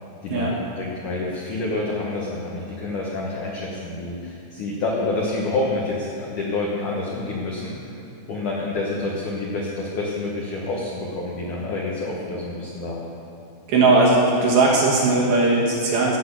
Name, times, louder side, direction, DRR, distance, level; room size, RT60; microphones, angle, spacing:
voice 1, 0.2-7.8 8.3-13.1, left 2 dB, 85° left, -3 dB, 1.7 m, -28 dB
voice 2, 13.7-16.2, right 3 dB, 65° right, -3 dB, 2.7 m, -18 dB
15.5 x 6.1 x 8.3 m, 2.7 s
omnidirectional pair, 5.7 m